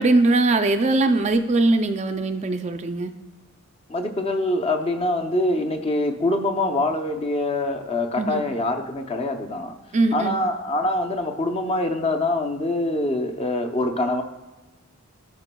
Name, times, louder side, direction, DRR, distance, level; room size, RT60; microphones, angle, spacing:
voice 1, 0.0-3.1 8.2-8.4 9.9-10.3, right 2 dB, 30° right, 7 dB, 0.3 m, -21 dB
voice 2, 3.9-9.7 10.1-14.2, left 2 dB, 25° left, 4 dB, 0.6 m, -24 dB
15.0 x 5.1 x 2.2 m, 1.2 s
head